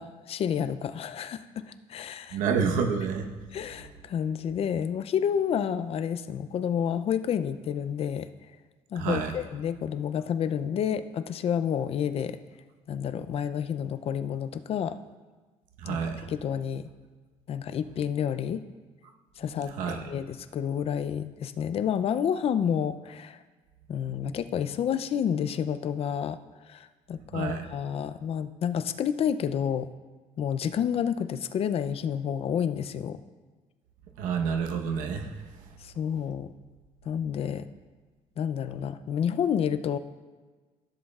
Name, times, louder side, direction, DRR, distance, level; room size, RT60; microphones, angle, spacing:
voice 1, 0.0-2.4 3.5-8.3 8.9-12.4 12.9-15.0 15.9-16.0 16.3-16.9 17.5-18.6 19.4-23.4 23.9-26.4 26.7-29.9 30.4-33.2 35.8-36.5 37.1-37.7 38.4-40.0, left 8 dB, 50° left, 12 dB, 0.5 m, -29 dB
voice 2, 2.3-3.3 8.9-9.3 15.8-16.3 19.7-20.0 27.3-27.6 34.2-35.3, right 6 dB, 90° right, 3 dB, 1.0 m, -28 dB
14.5 x 7.6 x 2.4 m, 1.3 s
cardioid pair, 115°, 13 cm